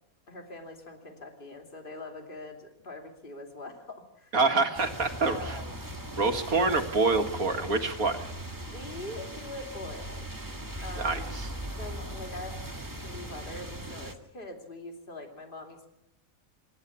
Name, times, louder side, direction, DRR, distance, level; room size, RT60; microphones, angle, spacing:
voice 1, 0.3-4.3 5.2-5.8 8.6-10.2 10.8-11.3 11.6-12.6 13.0-15.9, left 2 dB, 35° left, 2 dB, 3.0 m, -43 dB
voice 2, 4.3-5.6 6.1-8.3 11.0-11.5, right 3 dB, 85° right, 5 dB, 2.3 m, -26 dB
sound 1, 4.7-14.1, right 1 dB, 15° right, 1.5 m, -39 dB
26.0 x 12.0 x 8.3 m, 0.85 s
omnidirectional pair, 1.5 m